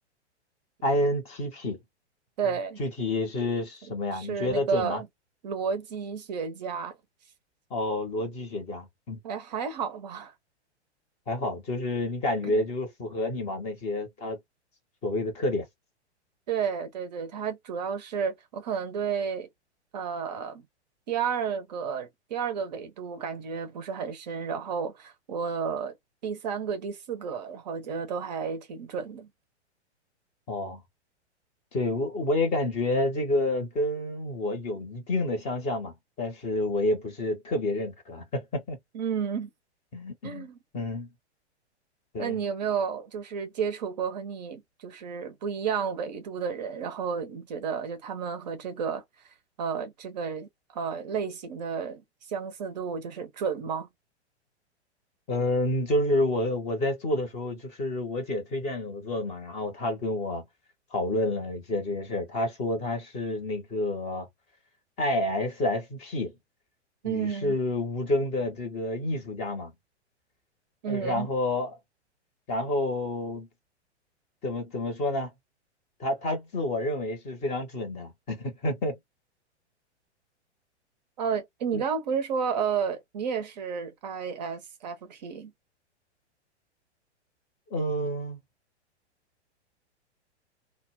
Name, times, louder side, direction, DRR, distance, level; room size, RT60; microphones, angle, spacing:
voice 1, 0.8-1.8 2.8-5.0 7.7-9.2 11.3-14.4 15.0-15.6 30.5-30.8 31.7-38.8 39.9-40.5 40.7-41.1 42.1-42.4 55.3-60.4 60.9-64.3 65.0-66.3 67.0-69.7 70.9-71.7 72.5-73.5 74.4-75.3 76.0-79.0 81.7-81.8 87.7-88.4, left 1 dB, 20° left, 0.7 m, -29 dB
voice 2, 2.4-2.8 4.1-5.1 5.4-7.0 9.2-10.3 12.4-12.6 16.5-19.5 19.9-20.6 21.1-26.0 26.2-29.3 38.9-39.5 40.2-40.6 42.2-52.0 52.3-53.9 67.0-67.6 70.8-71.3 81.2-85.5, right 6 dB, 40° right, 0.5 m, -32 dB
2.0 x 2.0 x 3.3 m
figure-of-eight pair, 105°, 35 cm